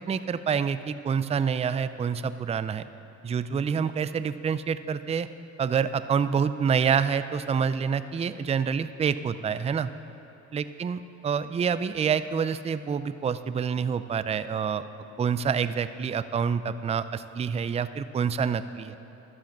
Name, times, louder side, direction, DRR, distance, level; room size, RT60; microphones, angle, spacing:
voice 1, 0.1-2.9 3.2-5.3 5.6-9.9 10.5-14.8 15.2-19.0, right 6 dB, 20° right, 13 dB, 0.3 m, -27 dB
11.5 x 7.6 x 7.2 m, 3.0 s
cardioid pair, 90°, 30 cm